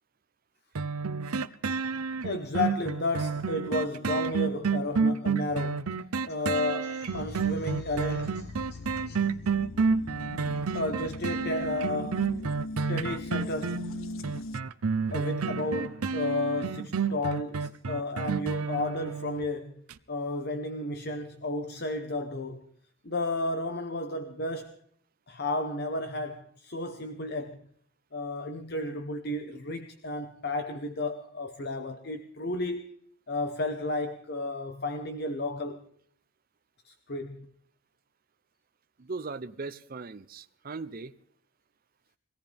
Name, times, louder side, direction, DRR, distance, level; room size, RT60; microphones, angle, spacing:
sound 1, 0.7-19.4 19.9-20.0, right 5 dB, 85° right, 0.7 m, -30 dB
voice 1, 2.2-6.0 6.3-9.3 10.7-12.3 12.9-13.9 15.1-19.8 20.1-22.6 23.0-24.8 25.3-27.6 28.1-32.8 33.3-35.8 36.8-37.5, left 2 dB, 50° left, 1.0 m, -33 dB
sound 2, 7.1-14.6, left 2 dB, 65° left, 0.6 m, -41 dB
voice 2, 39.0-41.1, right 3 dB, 40° right, 0.6 m, -39 dB
22.5 x 17.5 x 3.5 m
head